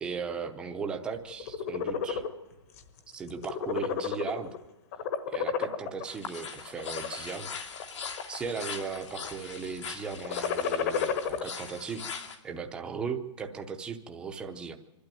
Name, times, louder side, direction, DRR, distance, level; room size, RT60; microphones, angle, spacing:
voice 1, 0.0-2.2 3.1-4.5 5.3-7.5 8.3-12.1 12.4-14.8, right 5 dB, 5° right, 5 dB, 0.7 m, -37 dB
sound 1, 1.3-2.3 2.8-3.0 3.3-4.6 4.9-6.0 6.7-7.1 7.7-8.5 8.8-9.3 10.2-11.4, left 7 dB, 30° left, 1.2 m, -31 dB
sound 2, 6.1-12.4, left 6 dB, 75° left, 2.7 m, -41 dB
25.5 x 12.0 x 9.1 m, 1.1 s
hypercardioid pair, 170°, 15 cm